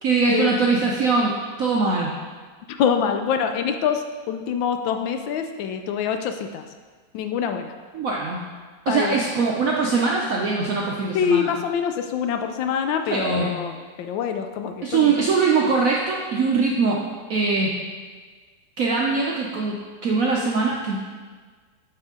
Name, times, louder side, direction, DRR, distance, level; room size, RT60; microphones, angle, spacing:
voice 1, 0.0-2.1 7.9-8.4 8.9-11.5 13.1-13.6 14.8-17.0 17.3-17.7 18.8-21.0, right 4 dB, 70° right, -2 dB, 0.8 m, -22 dB
voice 2, 2.7-6.6 7.1-7.7 8.9-9.2 11.1-15.1, left 7 dB, 75° left, 6 dB, 1.2 m, -25 dB
9.1 x 4.5 x 3.6 m, 1.5 s
omnidirectional pair, 2.2 m